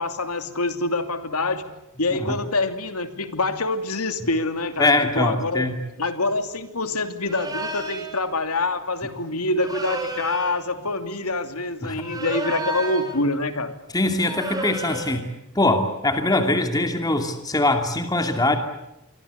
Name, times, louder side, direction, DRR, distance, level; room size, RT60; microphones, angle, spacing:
voice 1, 0.0-1.6 2.0-5.7 6.0-13.7, left 2 dB, 85° left, 8 dB, 2.9 m, -26 dB
voice 2, 4.8-5.8 11.8-12.2 13.9-15.3 15.5-18.6, left 2 dB, 15° left, 6 dB, 2.6 m, -22 dB
sound 1, 7.3-8.2 9.6-10.6 12.0-13.2 14.2-15.2, right 2 dB, 15° right, 5.3 m, -31 dB
28.0 x 23.5 x 8.3 m, 0.88 s
head